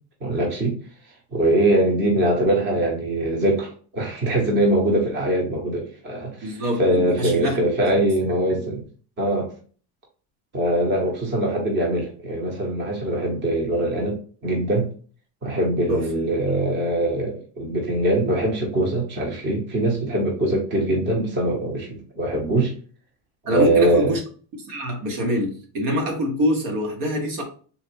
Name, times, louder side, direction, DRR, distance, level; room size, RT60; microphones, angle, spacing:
voice 1, 0.2-0.8 1.3-8.8 9.2-9.5 10.5-14.9 15.4-22.7 23.5-24.2, right 1 dB, 25° right, 1.0 m, -22 dB
voice 2, 6.4-7.6 8.5-8.8 15.9-16.1 23.5-24.2 24.7-27.4, equal, 75° right, 1.6 m, -25 dB
4.0 x 2.3 x 4.5 m
cardioid pair, 165°, 44 cm